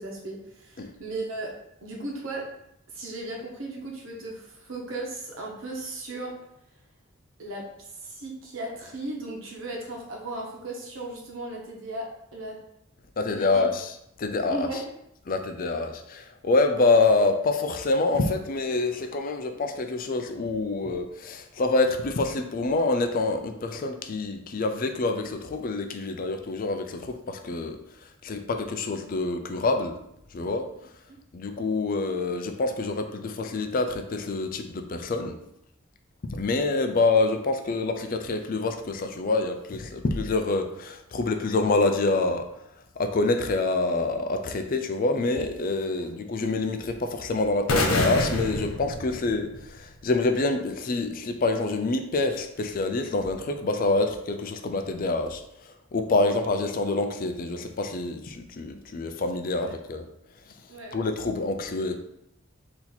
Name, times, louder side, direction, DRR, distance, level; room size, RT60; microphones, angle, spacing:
voice 1, 0.0-1.5 1.8-2.5 2.9-6.3 7.4-7.6 7.9-12.1 12.3-12.6 13.2-13.6 14.5-14.8 46.0-46.1 59.6-59.7 60.7-61.0, right 2 dB, 70° right, -1 dB, 1.1 m, -36 dB
voice 2, 13.2-14.7 15.3-30.0 30.3-30.7 31.3-35.4 36.3-42.5 43.0-60.1 60.5-60.6 60.9-62.0, left 3 dB, 45° left, 7 dB, 0.4 m, -26 dB
sound 1, 47.7-49.8, left 2 dB, 80° left, 0.8 m, -27 dB
4.3 x 2.9 x 4.0 m, 0.78 s
head